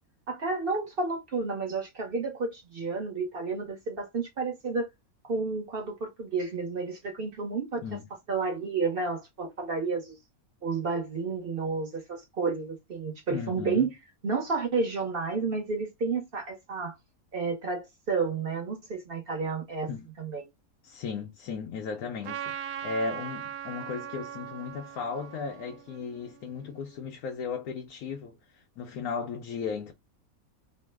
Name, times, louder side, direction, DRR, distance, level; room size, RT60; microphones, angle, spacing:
voice 1, 0.3-4.9 5.2-7.8 8.3-10.2 10.6-13.9 14.2-16.9 17.3-19.9 20.2-20.5, right 4 dB, 45° right, 0.9 m, -31 dB
voice 2, 13.3-13.9 19.9-20.1 20.8-22.6 22.8-29.9, left 5 dB, 85° left, 1.1 m, -36 dB
Trumpet, 22.2-26.9, right 10 dB, 75° right, 1.0 m, -40 dB
3.1 x 2.0 x 3.2 m
omnidirectional pair, 1.5 m